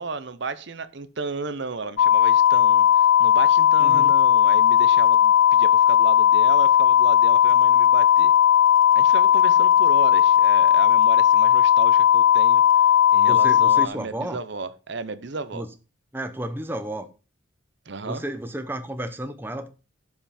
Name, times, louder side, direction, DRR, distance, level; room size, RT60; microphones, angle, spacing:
voice 1, 0.0-8.3 9.0-12.6 13.1-15.6 17.9-18.2, right 4 dB, 60° right, 0.8 m, -34 dB
sound 1, 2.0-13.9, left 10 dB, 65° left, 0.3 m, -17 dB
voice 2, 3.8-4.1 13.2-14.4 15.5-15.7 16.1-17.1 18.0-19.7, right 1 dB, 10° right, 0.7 m, -32 dB
12.0 x 5.8 x 4.2 m
head